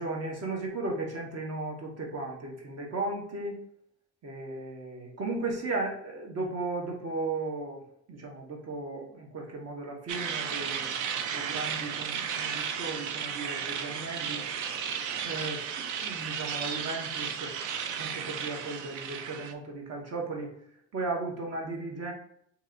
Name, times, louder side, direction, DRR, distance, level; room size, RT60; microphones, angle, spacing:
voice 1, 0.0-3.6 4.2-7.8 8.1-10.9 11.3-14.5 15.2-17.5 18.0-20.5 20.9-22.1, right 3 dB, 55° right, 0 dB, 1.2 m, -36 dB
sound 1, 10.1-19.5, right 7 dB, 80° right, 0.5 m, -34 dB
2.9 x 2.9 x 3.7 m, 0.69 s
cardioid pair, 90°, 30 cm